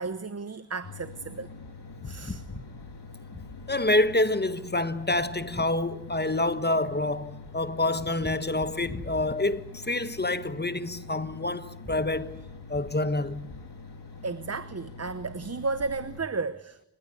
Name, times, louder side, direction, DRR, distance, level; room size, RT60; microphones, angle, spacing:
voice 1, 0.0-1.5 2.0-2.4 14.2-16.8, right 4 dB, 40° right, 0.9 m, -33 dB
sound 1, 0.8-16.2, left 4 dB, 85° left, 2.7 m, -45 dB
voice 2, 2.0-2.6 3.7-12.3 12.7-13.5, left 2 dB, 25° left, 1.4 m, -27 dB
29.5 x 16.0 x 9.7 m
wide cardioid pair, 70°, 39 cm